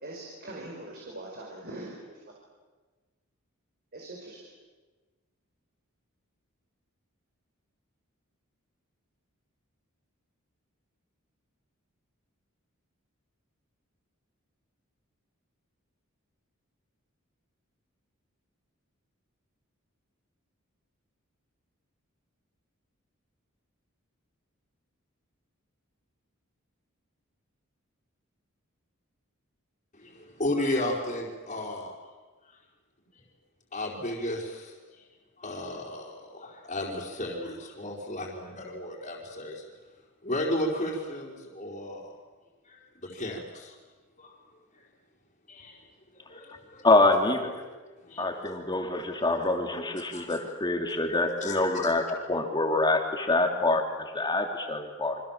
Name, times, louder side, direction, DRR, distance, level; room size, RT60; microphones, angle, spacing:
voice 1, 0.0-2.2 3.9-4.4, right 2 dB, 50° right, -1 dB, 5.1 m, -42 dB
voice 2, 29.9-31.9 32.5-32.6 33.7-35.1 35.4-39.6 40.2-42.1 42.6-43.7 44.2-44.4 45.5-45.8 46.3-46.9 48.0-48.3 50.1-50.3 51.4-51.9, left 1 dB, 35° left, -3 dB, 4.8 m, -34 dB
voice 3, 46.8-47.5 48.2-55.2, left 2 dB, 20° left, 3 dB, 3.2 m, -26 dB
28.0 x 25.5 x 7.5 m, 1.3 s
head